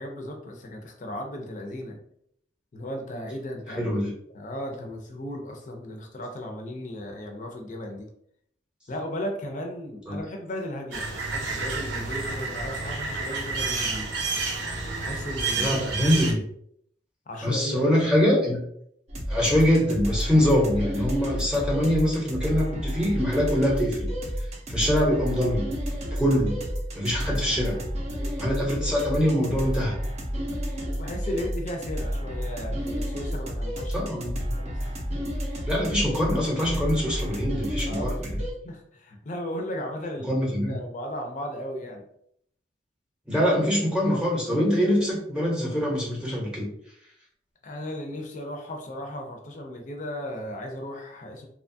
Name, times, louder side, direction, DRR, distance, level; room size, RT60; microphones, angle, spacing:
voice 1, 0.0-2.0 2.7-3.9 4.3-8.1 8.9-14.1 15.0-15.8 17.3-18.1 28.2-28.4 30.9-34.1 34.7-34.8 37.9-42.0 47.6-51.5, left 1 dB, 40° left, 3 dB, 0.5 m, -36 dB
voice 2, 3.8-4.1 10.1-10.2 15.6-16.4 17.4-18.6 19.3-24.1 24.7-25.7 26.1-26.6 26.9-27.8 28.4-29.9 33.9-34.5 35.7-38.4 40.3-40.8 43.3-46.7, equal, 5° right, -4 dB, 0.7 m, -24 dB
sound 1, 10.9-16.3, right 3 dB, 80° right, 0.6 m, -30 dB
sound 2, 19.1-38.5, equal, 35° right, 0.5 m, -31 dB
2.9 x 2.2 x 2.6 m, 0.69 s
head